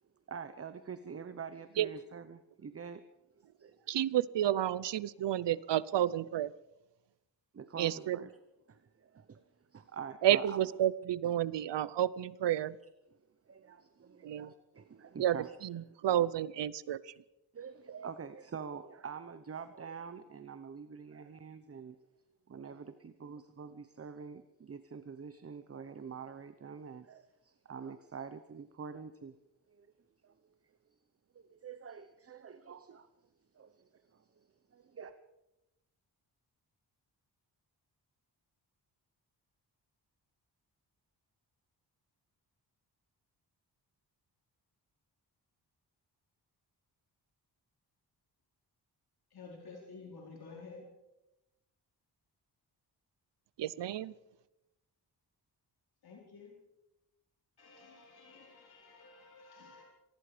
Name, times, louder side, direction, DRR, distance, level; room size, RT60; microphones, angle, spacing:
voice 1, 0.3-3.0 3.6-3.8 7.5-8.3 8.7-9.4 9.7-10.7 11.2-11.3 13.5-16.0 17.5-22.0 22.5-29.4 29.7-29.9 30.2-30.3 31.3-33.1 33.5-35.1, right 6 dB, 35° right, 11 dB, 0.9 m, -46 dB
voice 2, 3.9-6.5 7.8-8.2 10.2-12.8 14.2-14.5 15.2-15.4 15.6-17.0 53.6-54.1, right 11 dB, 85° right, 20 dB, 0.8 m, -30 dB
voice 3, 49.3-50.9 56.0-56.5 57.6-59.8, left 4 dB, 60° left, -2 dB, 4.7 m, -52 dB
27.0 x 19.5 x 5.1 m, 0.93 s
wide cardioid pair, 150°, 41 cm